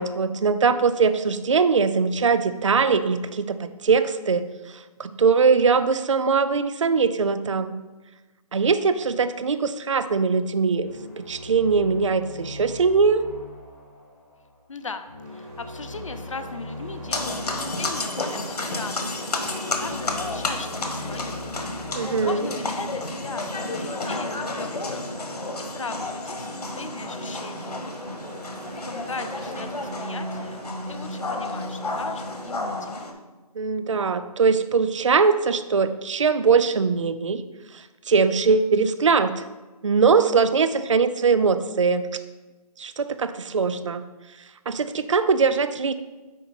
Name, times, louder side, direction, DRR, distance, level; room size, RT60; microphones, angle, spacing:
voice 1, 0.0-7.8 8.5-10.9 11.2-13.2 22.0-22.5 33.6-37.4 37.7-39.4 39.8-42.1 42.8-44.0 44.7-45.9, right 5 dB, 50° right, 11 dB, 0.4 m, -21 dB
sound 1, 10.8-23.9, left 2 dB, 15° left, 1.1 m, -41 dB
voice 2, 14.7-21.5 22.0-25.0 25.4-27.9 28.9-33.2, left 4 dB, 55° left, 9 dB, 0.7 m, -38 dB
sound 2, 15.2-32.8, right 1 dB, 85° right, 2.7 m, -40 dB
sound 3, 17.1-33.1, left 2 dB, 80° left, 1.5 m, -31 dB
9.8 x 4.4 x 4.0 m, 1.2 s
hypercardioid pair, 180°, 20 cm